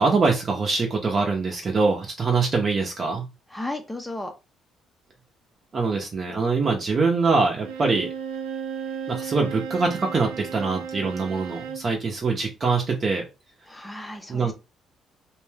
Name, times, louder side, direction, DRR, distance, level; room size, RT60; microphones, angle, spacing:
voice 1, 0.0-3.3 5.7-8.1 9.1-13.2 14.3-14.5, right 4 dB, 40° right, 0 dB, 0.7 m, -23 dB
voice 2, 3.5-4.3 13.7-14.5, left 1 dB, 10° left, 5 dB, 0.6 m, -34 dB
Bowed string instrument, 7.6-11.9, right 7 dB, 90° right, 0.5 m, -34 dB
2.7 x 2.1 x 3.3 m, 0.27 s
cardioid pair, 85°, 0 cm